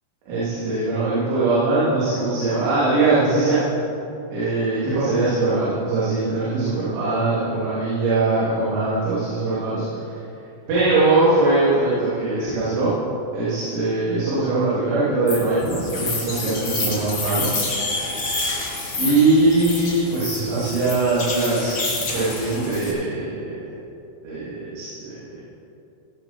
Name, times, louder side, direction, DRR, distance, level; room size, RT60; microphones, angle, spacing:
voice 1, 0.3-3.6 4.3-9.8 10.7-12.9 13.3-17.5 19.0-21.8 22.1-23.5 24.2-25.2, right 2 dB, 75° right, -11 dB, 5.3 m, -21 dB
sound 1, 15.3-22.9, left 3 dB, 50° left, 1.2 m, -28 dB
16.0 x 12.0 x 4.4 m, 2.7 s
omnidirectional pair, 5.6 m